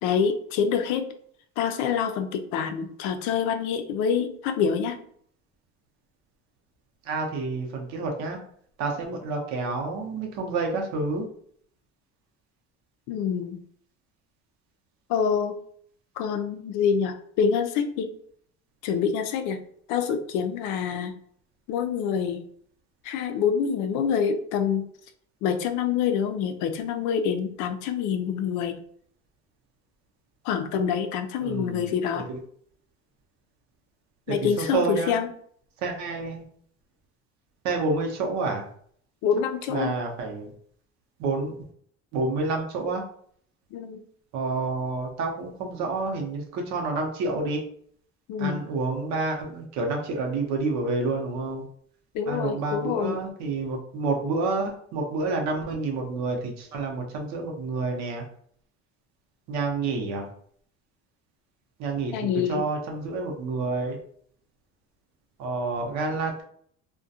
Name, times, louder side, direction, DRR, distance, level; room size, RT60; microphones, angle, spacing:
voice 1, 0.0-1.1 1.6-5.0 13.1-13.6 15.1-15.6 16.2-18.1 18.8-19.6 19.9-21.1 21.7-22.4 23.0-24.9 25.4-28.8 30.4-32.3 34.3-35.3 39.2-40.0 43.7-44.0 48.3-48.6 52.1-53.2 62.1-62.6, left 7 dB, 75° left, 8 dB, 0.4 m, -26 dB
voice 2, 7.0-8.4 8.8-11.3 31.4-31.9 32.1-32.4 34.3-35.1 35.8-36.4 37.6-38.7 39.7-40.5 41.2-41.6 42.1-43.0 44.3-47.6 48.4-51.6 52.3-58.2 59.5-60.3 61.8-62.1 62.5-64.0 65.4-66.4, right 3 dB, 65° right, 1 dB, 0.7 m, -29 dB
2.3 x 2.2 x 2.6 m, 0.62 s
cardioid pair, 130°, 30 cm